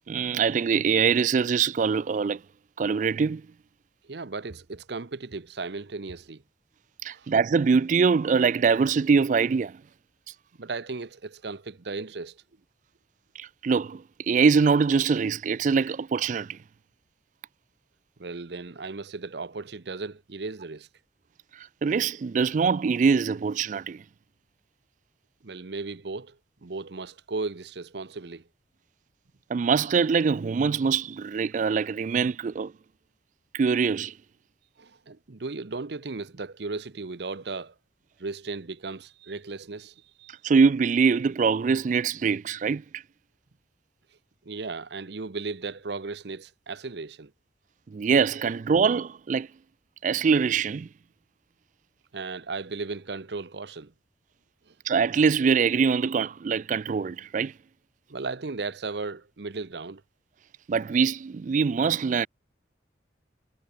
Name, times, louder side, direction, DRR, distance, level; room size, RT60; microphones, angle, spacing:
voice 1, 0.1-2.4 2.8-3.4 7.0-9.8 13.4-16.6 21.5-24.0 29.5-32.7 33.5-34.1 40.4-43.0 47.9-49.5 50.0-50.9 54.9-57.5 60.7-62.3, right 5 dB, 40° right, 0.3 m, -23 dB
voice 2, 4.0-6.4 7.1-7.3 10.6-12.4 18.2-20.9 25.4-28.5 34.8-37.7 38.2-40.3 44.4-47.3 48.5-48.6 52.1-53.9 54.7-54.8 58.1-60.0, right 3 dB, 60° right, 0.8 m, -36 dB
head